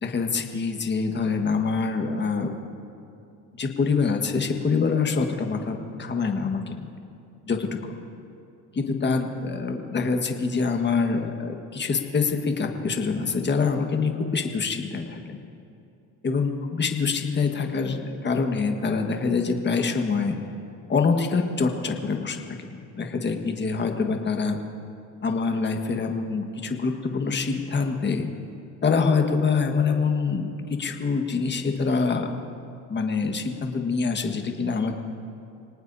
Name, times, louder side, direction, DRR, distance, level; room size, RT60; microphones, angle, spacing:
voice 1, 0.0-2.5 3.6-7.0 7.5-7.8 8.7-15.4 16.2-20.4 20.9-24.6 25.2-28.3 28.8-32.3 32.9-35.0, left 4 dB, 30° left, 4 dB, 1.6 m, -25 dB
26.5 x 19.0 x 2.8 m, 2.6 s
supercardioid pair, 90°, 37 cm